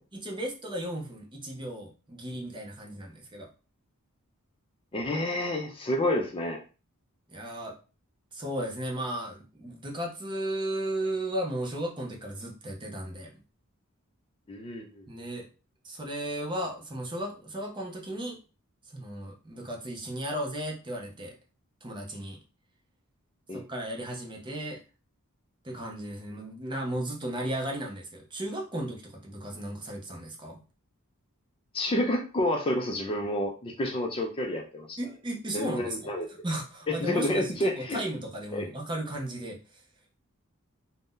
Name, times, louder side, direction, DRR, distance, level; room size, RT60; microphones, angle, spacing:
voice 1, 0.1-3.5 7.3-7.8 8.3-13.3 15.1-15.5 15.8-18.4 18.9-21.3 21.8-22.4 23.5-24.8 25.6-30.6 35.0-36.1 36.4-39.8, right 1 dB, 20° right, 0 dB, 0.6 m, -35 dB
voice 2, 4.9-6.6 14.5-15.1 23.5-23.6 31.7-35.0 35.5-36.3 36.9-38.0 38.5-38.7, left 1 dB, 25° left, 2 dB, 0.4 m, -29 dB
2.6 x 2.1 x 3.6 m, 0.34 s
head